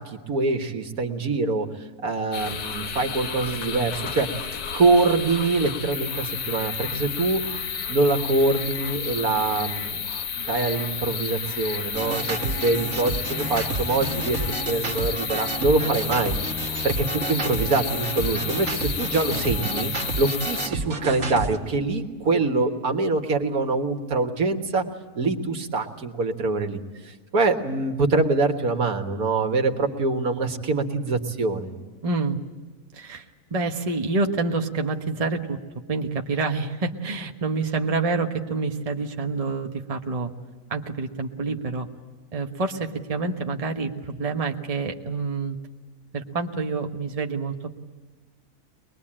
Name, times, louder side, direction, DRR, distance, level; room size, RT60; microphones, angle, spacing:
voice 1, 0.0-1.7 2.0-4.3 4.7-7.4 7.9-10.0 10.4-14.4 14.7-16.3 16.8-24.8 25.2-26.8 27.0-31.7, right 3 dB, 70° right, 5 dB, 2.1 m, -24 dB
sound 1, 2.3-20.7, left 7 dB, 80° left, 1.6 m, -31 dB
sound 2, 11.9-21.6, right 3 dB, 50° right, 1.9 m, -31 dB
voice 2, 32.0-32.4 32.9-33.2 33.5-35.6 35.9-40.3 40.7-41.9 42.3-45.6 46.1-47.7, right 3 dB, 25° right, 3 dB, 1.2 m, -27 dB
23.5 x 21.0 x 8.8 m, 1.3 s
omnidirectional pair, 1.6 m